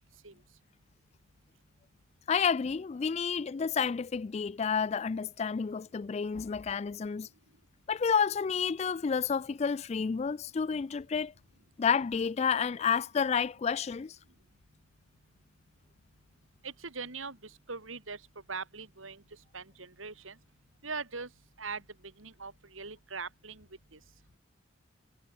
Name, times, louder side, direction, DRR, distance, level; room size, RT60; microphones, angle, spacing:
voice 1, 2.3-7.3 7.9-11.3 11.8-14.2, left 6 dB, 35° left, 0.3 m, -30 dB
voice 2, 16.6-18.2 18.5-19.2 19.5-20.4 20.8-21.3 21.6-21.8 22.2-24.0, right 4 dB, 80° right, 3.1 m, -41 dB
head